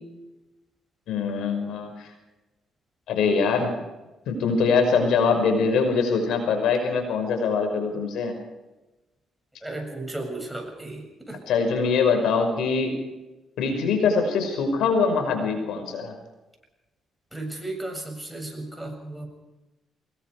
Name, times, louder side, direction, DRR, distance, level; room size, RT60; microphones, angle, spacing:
voice 1, 1.1-2.1 3.1-3.8 4.3-8.3 11.5-13.0 13.6-16.2, left 5 dB, 80° left, 5 dB, 5.7 m, -23 dB
voice 2, 9.6-11.4 17.3-19.3, right 2 dB, 5° right, 3 dB, 7.3 m, -34 dB
25.0 x 21.5 x 5.0 m, 1.1 s
cardioid pair, 90°, 0 cm